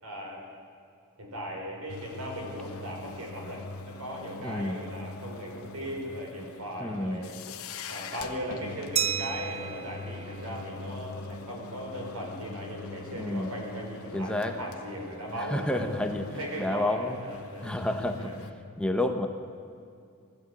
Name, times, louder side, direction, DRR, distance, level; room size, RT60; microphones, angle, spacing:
voice 1, 0.0-0.5 1.2-7.4 7.9-15.9 16.3-17.7 18.2-18.4, equal, 80° right, 0 dB, 5.4 m, -38 dB
sound 1, 1.9-18.5, left 3 dB, 70° left, 1.2 m, -43 dB
voice 2, 4.4-4.8 6.8-7.2 13.2-13.5 14.1-14.5 15.5-16.2 16.6-17.2 17.6-18.3 18.8-19.3, left 1 dB, 5° left, 5 dB, 1.1 m, -29 dB
Glass, 9.0-11.4, right 8 dB, 30° right, 0.6 m, -34 dB
19.5 x 13.5 x 9.8 m, 2.4 s
head